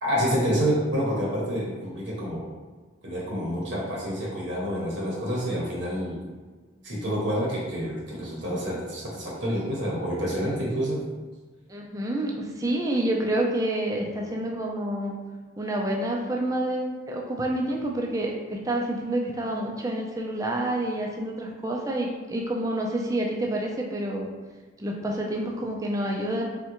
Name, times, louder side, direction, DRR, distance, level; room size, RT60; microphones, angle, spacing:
voice 1, 0.0-2.5 3.0-6.2 6.8-11.1, equal, 65° right, -5 dB, 0.7 m, -28 dB
voice 2, 11.7-15.1 15.6-24.3 24.8-26.5, right 1 dB, 15° right, -1 dB, 0.4 m, -28 dB
3.5 x 2.1 x 2.9 m, 1.3 s
head